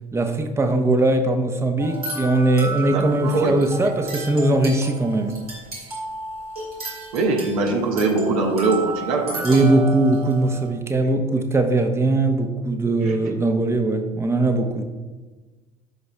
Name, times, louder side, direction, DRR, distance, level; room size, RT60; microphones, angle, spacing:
voice 1, 0.1-5.3 9.4-14.8, right 2 dB, 15° right, 6 dB, 0.8 m, -20 dB
sound 1, 1.8-10.7, right 2 dB, 90° right, 1.9 m, -33 dB
voice 2, 2.8-3.5 3.8-3.9 7.1-9.6 10.9-11.1 13.0-13.2, right 3 dB, 75° right, 2 dB, 1.1 m, -23 dB
13.0 x 5.4 x 2.2 m, 1.3 s
figure-of-eight pair, 60°, 18 cm